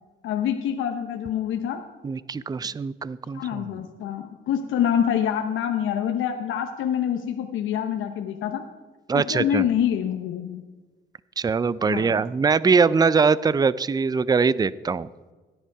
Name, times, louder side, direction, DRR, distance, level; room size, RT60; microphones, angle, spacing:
voice 1, 0.2-1.8 3.3-8.6 9.1-10.6 11.8-12.2, left 9 dB, 85° left, 5 dB, 0.9 m, -26 dB
voice 2, 2.0-3.6 9.1-9.6 11.4-15.1, right 5 dB, 20° right, 19 dB, 0.4 m, -22 dB
16.5 x 10.5 x 4.7 m, 1.3 s
cardioid pair, 90°, 20 cm